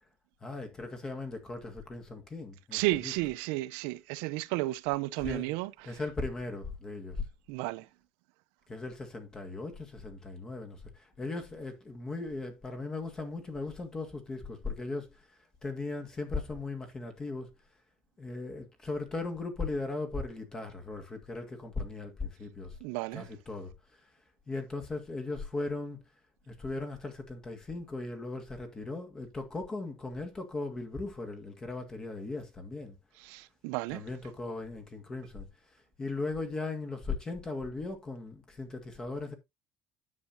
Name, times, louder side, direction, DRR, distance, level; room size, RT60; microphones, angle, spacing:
voice 1, 0.4-3.2 5.2-5.5 5.9-7.3 8.7-17.5 18.2-22.8 23.1-23.7 24.5-26.0 26.5-33.0 33.9-35.5 36.0-39.3, left 3 dB, 20° left, 1.8 m, -38 dB
voice 2, 2.7-5.7 7.5-7.9 22.8-23.2 33.3-34.0, right 19 dB, 85° right, 0.6 m, -32 dB
9.6 x 7.2 x 2.7 m
cardioid pair, 145°, 3 cm